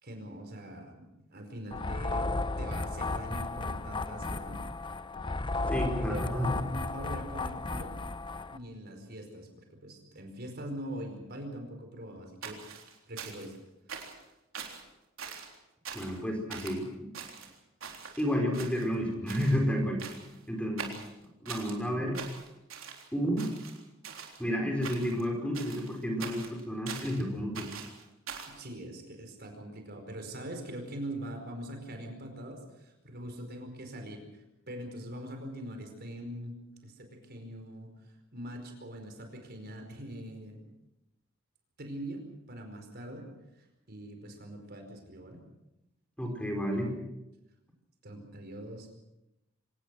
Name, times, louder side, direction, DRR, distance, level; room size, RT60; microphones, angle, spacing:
voice 1, 0.0-4.6 5.7-8.0 8.5-9.5 9.8-12.6 13.1-13.6 28.4-36.6 36.8-40.7 41.8-43.3 43.6-45.4 48.0-48.9, right 1 dB, 50° right, 5 dB, 4.9 m, -43 dB
sound 1, 1.7-8.6, left 2 dB, 25° left, 0.8 m, -34 dB
voice 2, 5.7-6.5 15.9-17.1 18.2-20.0 20.5-20.9 21.4-22.2 23.1-23.5 24.4-27.7 46.2-46.9, equal, 5° left, 2 dB, 4.7 m, -31 dB
sound 2, 12.4-13.6 13.9-14.2 14.5-14.8 15.2-15.6 15.9-16.2 16.5-16.8 17.1-18.2 18.5-19.0 19.3-19.6 20.0-20.4 20.8-21.8 22.1-23.1 23.4-24.4 24.8-25.2 25.5-27.2 27.5-28.6, right 6 dB, 85° right, 3.7 m, -43 dB
25.5 x 19.0 x 6.3 m, 0.91 s
head